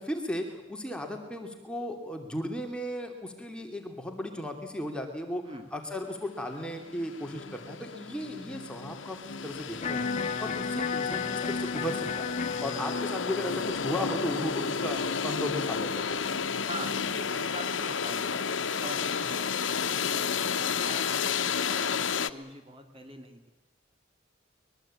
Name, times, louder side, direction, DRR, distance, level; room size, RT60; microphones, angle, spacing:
voice 1, 0.0-5.4 5.7-10.1 10.4-12.4 12.6-16.1, left 1 dB, 5° left, 3 dB, 2.7 m, -35 dB
sound 1, 6.3-6.4 6.7-22.3, left 6 dB, 85° left, 1.0 m, -32 dB
Electric guitar, 9.8-15.9, left 5 dB, 40° left, 1.7 m, -34 dB
sound 2, 12.2-19.8, right 1 dB, 65° right, 3.9 m, -53 dB
voice 2, 16.7-18.4 18.8-22.0 22.3-23.5, right 1 dB, 30° right, 5 dB, 3.0 m, -43 dB
23.5 x 22.0 x 8.7 m, 1.1 s
head